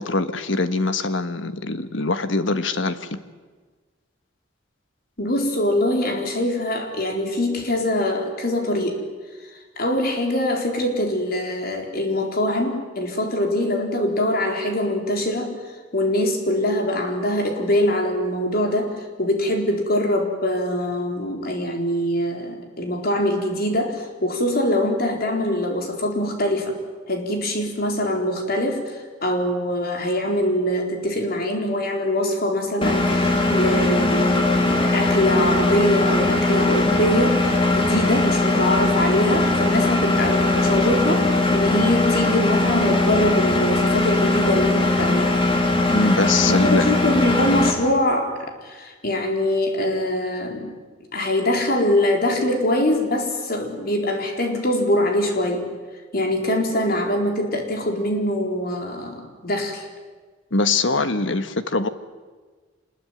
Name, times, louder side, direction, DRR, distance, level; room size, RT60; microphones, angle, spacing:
voice 1, 0.0-3.2 45.9-46.9 60.5-61.9, left 3 dB, 70° left, 11 dB, 1.5 m, -23 dB
voice 2, 5.2-9.0 9.8-15.5 15.9-26.8 27.1-45.4 46.5-50.8 51.1-55.7 56.1-59.8, left 1 dB, 50° left, 3 dB, 4.2 m, -23 dB
Engine, 32.8-47.7, left 2 dB, 25° left, 2.9 m, -20 dB
26.5 x 21.0 x 9.3 m, 1.4 s
head